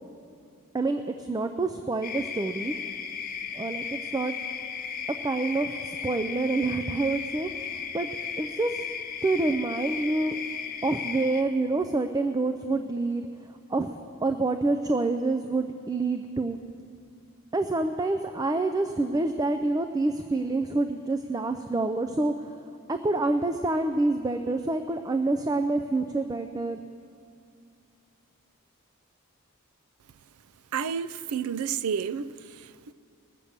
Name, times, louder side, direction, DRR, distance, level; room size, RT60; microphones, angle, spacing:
voice 1, 0.7-2.7 3.5-4.3 5.2-8.1 8.4-8.9 9.2-10.4 10.8-16.6 17.5-22.6 22.9-26.8, right 2 dB, 15° right, 0.3 m, -27 dB
sound 1, 2.0-11.4, left 6 dB, 40° left, 0.7 m, -35 dB
voice 2, 30.7-32.9, right 7 dB, 85° right, 0.4 m, -31 dB
20.5 x 6.8 x 7.3 m
head